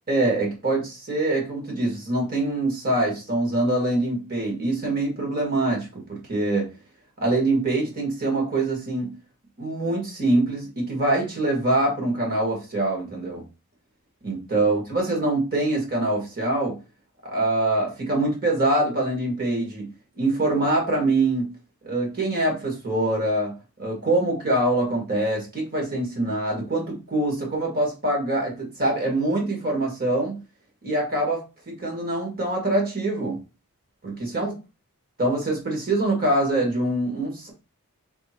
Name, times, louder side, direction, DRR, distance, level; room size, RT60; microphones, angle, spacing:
voice 1, 0.1-6.7 7.2-9.1 9.6-13.4 14.2-16.8 17.2-19.9 20.2-21.5 21.8-23.5 23.8-30.4 30.8-33.4 34.0-34.5 35.2-37.5, right 2 dB, 45° right, 0 dB, 2.0 m, -24 dB
3.5 x 3.5 x 4.4 m, 0.29 s
head